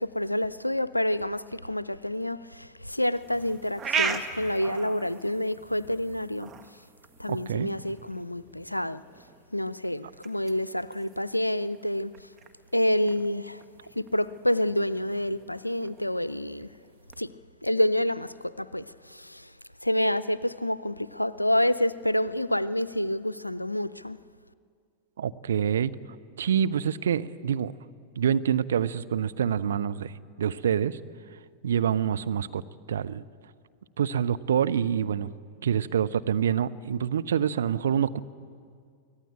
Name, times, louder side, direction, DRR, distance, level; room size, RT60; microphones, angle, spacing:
voice 1, 0.0-6.5 7.2-9.0 9.5-12.1 12.7-13.6 14.0-16.7 17.2-17.3 17.6-19.5 19.8-24.2, left 1 dB, 85° left, 0.5 m, -28 dB
sound 1, 3.1-17.2, right 6 dB, 25° right, 1.5 m, -39 dB
voice 2, 7.3-7.7 25.2-25.9 26.4-27.7 28.2-30.1 30.4-31.0 31.6-32.6 32.9-33.2 34.0-35.3 35.6-38.2, right 8 dB, 65° right, 0.7 m, -26 dB
24.0 x 17.5 x 8.9 m
figure-of-eight pair, 90°, 0 cm